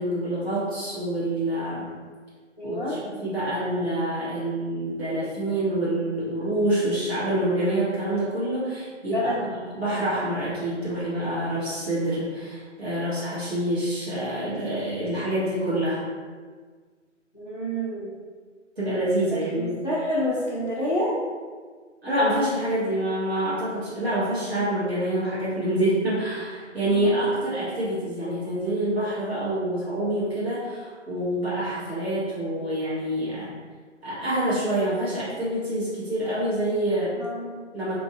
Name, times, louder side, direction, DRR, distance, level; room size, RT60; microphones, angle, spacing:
voice 1, 0.0-1.9 2.6-16.0 18.8-19.7 22.0-33.5 34.0-37.2 37.7-37.9, right 1 dB, 55° right, -11 dB, 1.3 m, -26 dB
voice 2, 2.6-3.0 9.1-9.4 17.3-18.1 19.6-21.1 26.8-27.2 37.2-37.5, equal, 40° left, -10 dB, 0.4 m, -28 dB
2.8 x 2.6 x 2.4 m, 1.5 s
figure-of-eight pair, 180°, 37 cm